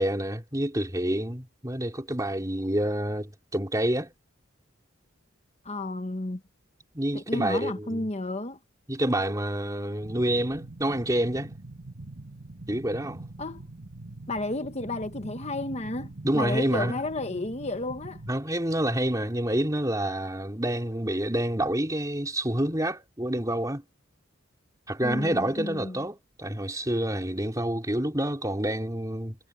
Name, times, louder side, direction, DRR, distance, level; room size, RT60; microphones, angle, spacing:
voice 1, 0.0-4.1 6.9-8.1 8.9-11.5 12.7-13.2 16.2-16.9 18.3-23.8 24.9-29.4, right 1 dB, 15° right, 3.8 m, -28 dB
voice 2, 5.6-6.4 7.1-8.6 13.4-13.6 14.3-18.2 25.0-26.0, left 2 dB, 35° left, 1.2 m, -32 dB
sound 1, 10.0-18.3, right 2 dB, 50° right, 1.8 m, -43 dB
head